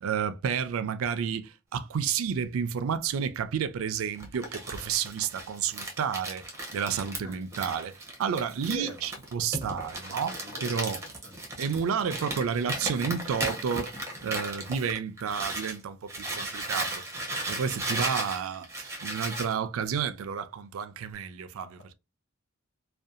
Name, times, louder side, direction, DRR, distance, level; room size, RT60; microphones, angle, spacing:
voice 1, 0.0-6.4 6.7-7.9 8.2-11.0 11.6-13.9 14.2-17.0 17.5-21.9, right 7 dB, 80° right, 0.4 m, -31 dB
Crumpling crinkling, 4.2-15.8 16.1-19.5, right 1 dB, 15° right, 0.7 m, -36 dB
voice 2, 8.7-9.0 10.2-11.4, equal, 85° left, 0.9 m, -44 dB
2.7 x 2.2 x 2.4 m
head